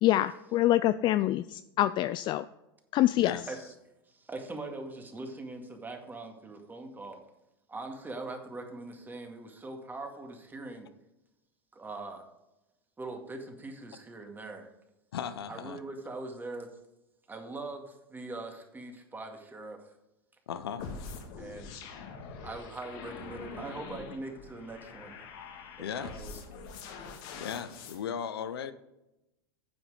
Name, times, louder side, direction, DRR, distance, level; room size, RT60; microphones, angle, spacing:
voice 1, 0.0-2.5 2.9-3.4, left 14 dB, 40° left, 14 dB, 0.3 m, -25 dB
voice 2, 3.2-3.5 15.1-15.8 20.5-20.9 25.8-26.4 27.4-28.7, left 8 dB, 80° left, 12 dB, 0.7 m, -37 dB
voice 3, 4.1-7.2 7.7-10.9 11.7-12.2 13.0-14.7 15.5-16.7 17.3-19.9 21.4-21.8 22.4-25.1 25.9-26.4, right 2 dB, 15° right, 3 dB, 2.0 m, -42 dB
sound 1, 20.8-28.0, left 5 dB, 60° left, 1.9 m, -44 dB
9.6 x 7.2 x 5.0 m, 0.93 s
hypercardioid pair, 95°, 13 cm